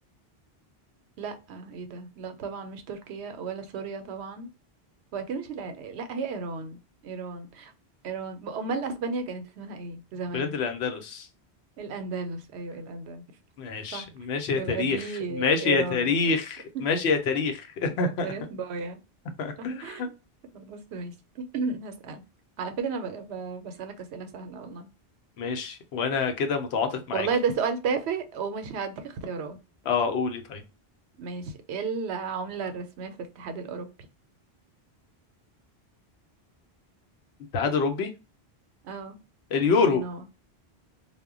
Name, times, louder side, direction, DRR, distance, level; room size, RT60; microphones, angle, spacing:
voice 1, 1.2-4.5 5.1-7.7 8.0-10.6 11.8-13.2 13.9-14.1 14.5-16.4 18.0-19.0 19.6-20.0 20.5-22.2 22.6-24.9 27.1-29.6 31.2-33.9 38.8-39.2 39.7-40.3, right 5 dB, 85° right, 0.8 m, -34 dB
voice 2, 10.3-11.3 13.6-18.3 19.4-20.1 25.4-27.3 29.9-30.6 37.5-38.1 39.5-40.0, left 5 dB, 80° left, 0.9 m, -26 dB
2.1 x 2.1 x 3.5 m
omnidirectional pair, 1.1 m